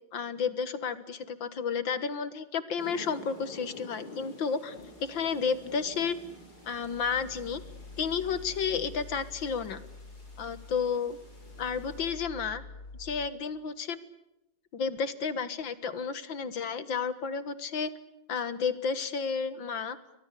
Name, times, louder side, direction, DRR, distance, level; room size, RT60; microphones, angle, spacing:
voice 1, 0.1-4.8 5.0-6.2 6.7-7.6 8.0-9.8 10.4-11.2 11.6-12.6 13.0-14.0 14.7-17.9 18.3-20.0, left 6 dB, 65° left, 13 dB, 2.1 m, -31 dB
sound 1, 2.8-12.1, left 2 dB, 45° left, 7.1 m, -50 dB
sound 2, 4.8-13.3, left 3 dB, 25° left, 6.8 m, -48 dB
30.0 x 24.0 x 6.8 m, 0.92 s
omnidirectional pair, 2.3 m